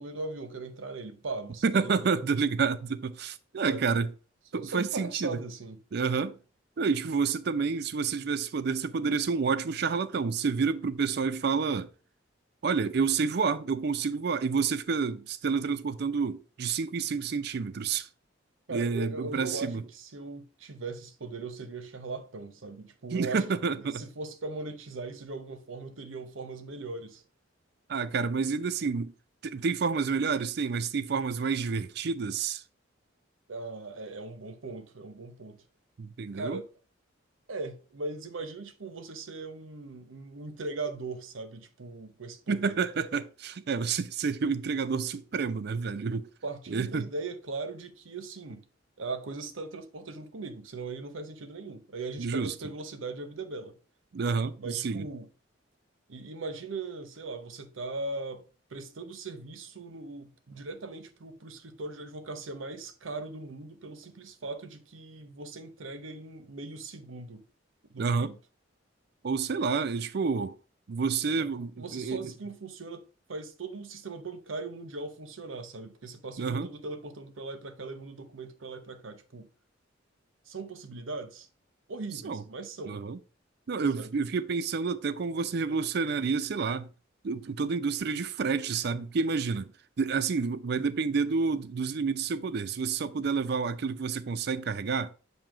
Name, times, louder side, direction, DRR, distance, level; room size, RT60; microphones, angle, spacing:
voice 1, 0.0-2.2 3.7-3.9 4.5-5.8 18.7-23.4 23.7-27.2 33.5-35.6 36.3-36.7 37.5-42.8 46.4-48.6 49.0-53.8 54.6-55.3 56.1-58.4 58.7-67.4 67.9-68.4 71.4-79.5 80.5-81.5 81.9-83.0 84.0-84.1, right 3 dB, 85° right, 0.8 m, -39 dB
voice 2, 1.6-4.1 4.5-5.4 5.9-6.4 6.8-11.9 12.6-18.1 18.7-19.8 23.1-24.0 27.9-29.1 29.4-32.6 36.0-36.6 42.5-46.3 46.7-47.1 52.2-52.5 54.1-55.1 68.0-68.3 69.2-70.6 70.9-72.3 76.4-76.7 82.2-82.4 82.9-83.2 83.7-86.9 87.2-89.7 90.0-95.1, right 5 dB, 55° right, 0.4 m, -29 dB
7.4 x 2.8 x 4.8 m
head